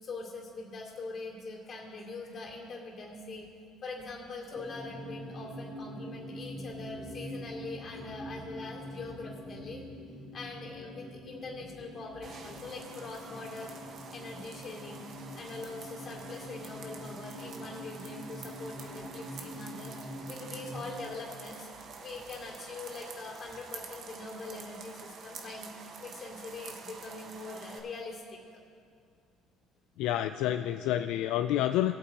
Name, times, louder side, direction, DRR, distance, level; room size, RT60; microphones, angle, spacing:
voice 1, 0.0-3.5 3.8-9.9 10.3-13.8 14.1-19.9 20.3-21.7 22.0-28.4 30.4-30.5, left 3 dB, 40° left, -1 dB, 2.7 m, -43 dB
sound 1, 4.5-20.9, equal, 15° right, 2.9 m, -45 dB
sound 2, 12.2-27.8, right 5 dB, 50° right, 1.3 m, -48 dB
voice 2, 30.0-31.9, left 12 dB, 75° left, 9 dB, 0.3 m, -28 dB
21.5 x 8.4 x 2.9 m, 2.3 s
cardioid pair, 105°, 0 cm